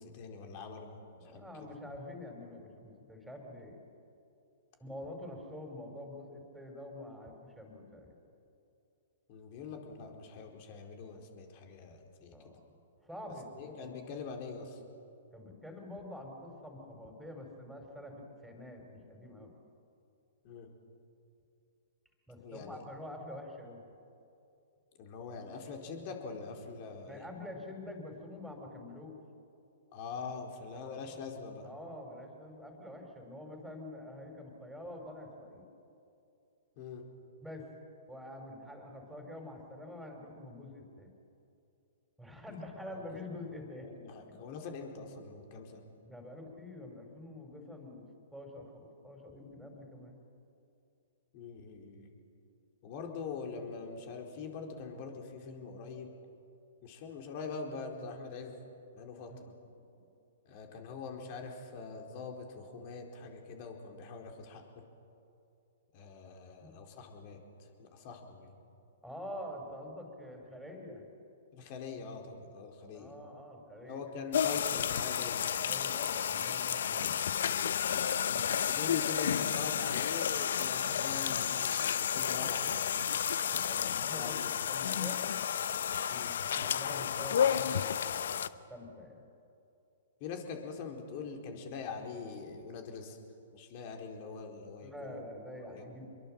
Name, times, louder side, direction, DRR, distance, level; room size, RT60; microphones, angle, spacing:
voice 1, 0.0-1.4 9.3-12.3 13.6-14.8 20.4-20.7 22.4-22.8 25.0-27.2 29.9-31.7 36.8-37.0 42.9-43.2 43.8-45.8 51.3-52.1 52.8-56.1 56.8-58.6 58.9-59.5 60.4-64.6 65.9-67.4 67.8-68.5 71.5-73.1 73.8-75.5 77.8-83.2 84.2-84.7 86.1-86.3 90.2-93.2 93.5-95.2 95.7-95.9, left 5 dB, 45° left, 2 dB, 4.4 m, -43 dB
voice 2, 1.2-3.8 4.8-8.2 12.3-12.6 13.0-14.0 15.3-19.5 22.3-23.8 27.1-29.1 30.7-31.1 31.6-35.6 37.4-37.7 38.1-41.1 42.2-43.9 44.3-44.4 46.0-50.2 59.3-59.4 59.8-60.0 66.6-66.7 69.0-71.1 72.9-74.0 75.6-77.4 83.4-85.2 86.1-89.2 94.8-96.1, left 1 dB, ahead, 2 dB, 5.2 m, -46 dB
sound 1, 74.3-88.5, left 8 dB, 65° left, 0.8 m, -31 dB
26.5 x 22.5 x 7.8 m, 2.6 s
hypercardioid pair, 120°, 0 cm